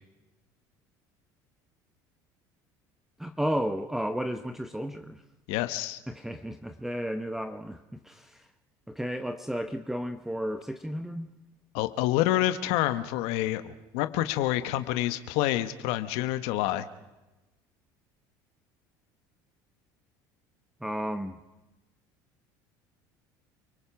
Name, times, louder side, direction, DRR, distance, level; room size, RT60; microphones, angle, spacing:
voice 1, 3.2-5.2 6.1-8.5 8.9-11.3 20.8-21.4, equal, 5° right, 9 dB, 1.1 m, -33 dB
voice 2, 5.5-6.0 11.7-16.8, left 14 dB, 75° left, 10 dB, 1.2 m, -28 dB
29.5 x 19.5 x 5.9 m, 1.1 s
supercardioid pair, 85°, 10 cm